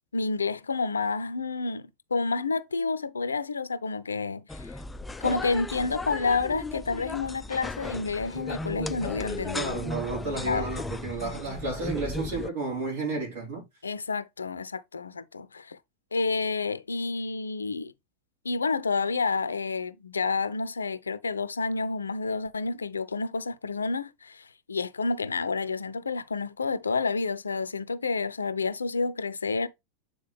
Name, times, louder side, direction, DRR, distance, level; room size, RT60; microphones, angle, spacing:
voice 1, 0.1-4.8 5.2-9.8 10.5-10.7 13.8-15.8 16.1-17.9 18.4-29.7, left 4 dB, 75° left, 0.5 m, -29 dB
sound 1, 4.5-12.5, left 2 dB, 10° left, 0.3 m, -36 dB
voice 2, 9.5-13.6, right 3 dB, 55° right, 3.9 m, -32 dB
8.5 x 3.9 x 3.4 m
figure-of-eight pair, 90°, 0 cm